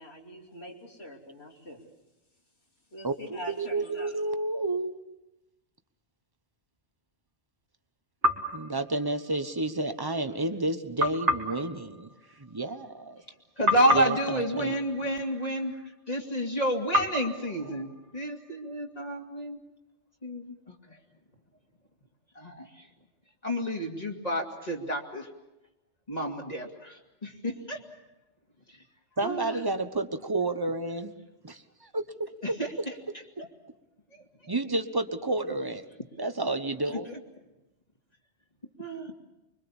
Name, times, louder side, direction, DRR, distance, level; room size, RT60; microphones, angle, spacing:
voice 1, 0.0-1.9 2.9-4.2, equal, 65° left, -1 dB, 3.8 m, -44 dB
voice 2, 3.0-4.9 8.5-12.1 12.4-13.2 13.9-14.7 29.2-31.1 31.4-32.3 34.5-35.8 36.2-37.1, right 2 dB, 20° right, 9 dB, 1.2 m, -30 dB
sound 1, 8.2-9.6 11.0-13.3 13.7-15.9 16.9-18.8, equal, 85° right, 2.6 m, -32 dB
voice 3, 13.6-15.7 16.1-19.6 20.2-21.0 22.3-22.7 23.4-25.3 26.1-27.8 29.2-29.6 32.4-32.9 38.8-39.1, equal, 35° left, 0 dB, 2.8 m, -30 dB
25.5 x 23.5 x 7.2 m, 0.97 s
omnidirectional pair, 1.2 m